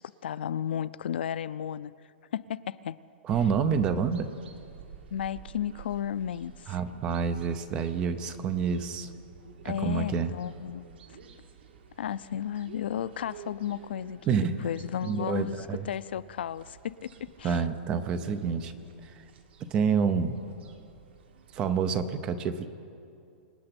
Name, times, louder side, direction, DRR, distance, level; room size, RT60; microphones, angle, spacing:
voice 1, 0.0-1.9 2.3-3.0 5.1-6.8 9.6-10.8 12.0-14.2 14.6-17.6, left 10 dB, 70° left, 18 dB, 0.4 m, -33 dB
voice 2, 3.3-4.3 6.7-9.1 9.6-10.3 14.3-14.6 15.0-15.9 17.4-18.7 19.0-19.2 19.7-20.4 21.5-22.7, right 6 dB, 15° right, 11 dB, 0.6 m, -28 dB
sound 1, 3.3-21.8, right 6 dB, 80° right, 1.8 m, -51 dB
26.0 x 8.8 x 6.0 m, 2.6 s
supercardioid pair, 180°, 6 cm